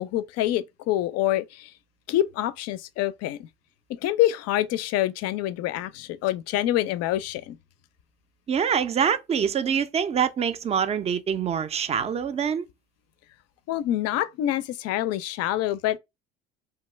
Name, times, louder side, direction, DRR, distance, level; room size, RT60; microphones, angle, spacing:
voice 1, 0.0-1.7 2.1-3.5 3.9-7.6 13.7-16.0, left 13 dB, 55° left, 0.4 m, -26 dB
voice 2, 8.5-12.6, right 7 dB, 20° right, 0.3 m, -25 dB
2.8 x 2.2 x 3.1 m
hypercardioid pair, 75°, 31 cm